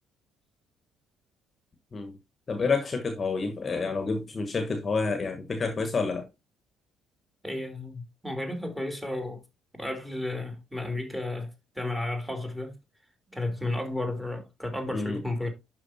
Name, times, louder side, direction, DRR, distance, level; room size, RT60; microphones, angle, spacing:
voice 1, 2.5-6.2 14.9-15.2, left 4 dB, 35° left, 1.2 m, -29 dB
voice 2, 7.4-9.4 9.7-12.8 13.3-15.5, left 2 dB, 5° right, 2.9 m, -33 dB
11.5 x 4.6 x 2.7 m
figure-of-eight pair, 50°, 0 cm